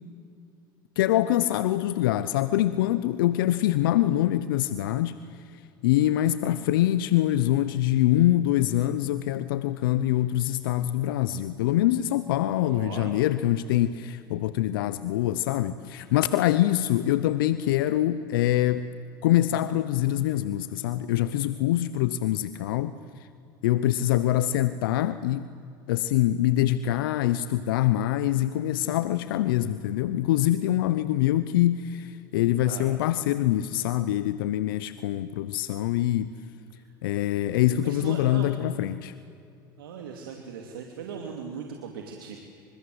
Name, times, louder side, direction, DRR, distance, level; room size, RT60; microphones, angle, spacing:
voice 1, 1.0-5.1 5.8-18.9 19.2-22.9 23.6-25.5 25.9-36.3 37.0-39.1, left 13 dB, 80° left, 14 dB, 0.9 m, -24 dB
voice 2, 12.6-13.1 32.6-32.9 36.7-36.8 37.8-38.6 39.8-42.4, right 6 dB, 85° right, 2 dB, 2.8 m, -39 dB
28.5 x 26.0 x 8.1 m, 2.5 s
hypercardioid pair, 85°, 11 cm